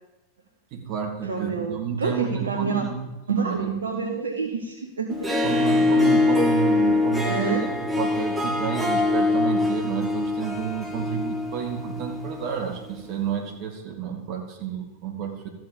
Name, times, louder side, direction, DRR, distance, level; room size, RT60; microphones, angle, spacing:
voice 1, 0.7-3.0 3.4-3.6 5.4-15.5, right 7 dB, 40° right, 2 dB, 2.3 m, -30 dB
voice 2, 1.2-2.8 3.3-5.6 7.2-7.7, right 5 dB, 70° right, 2 dB, 1.0 m, -28 dB
Harp, 5.1-12.5, left 2 dB, 10° right, 1.3 m, -23 dB
13.5 x 4.8 x 7.1 m, 0.99 s
figure-of-eight pair, 90°, 0 cm